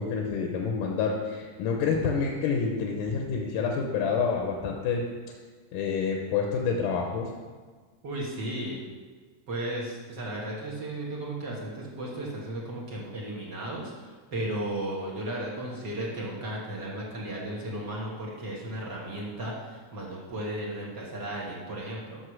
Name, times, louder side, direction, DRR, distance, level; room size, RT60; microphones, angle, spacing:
voice 1, 0.0-5.0 5.7-7.3, left 5 dB, 80° left, 1 dB, 2.4 m, -28 dB
voice 2, 8.0-8.8 9.5-22.2, right 1 dB, 50° right, -4 dB, 1.4 m, -35 dB
8.0 x 6.4 x 6.1 m, 1.4 s
omnidirectional pair, 3.8 m